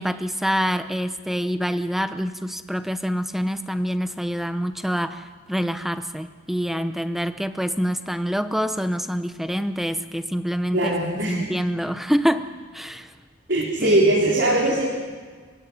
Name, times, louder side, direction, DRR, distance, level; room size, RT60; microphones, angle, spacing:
voice 1, 0.0-10.9 11.3-13.1 13.8-14.0 14.7-14.8, equal, ahead, 10 dB, 0.7 m, -26 dB
voice 2, 10.7-11.5 13.5-14.9, right 1 dB, 65° right, -3 dB, 4.2 m, -21 dB
27.5 x 16.5 x 9.8 m, 1.5 s
head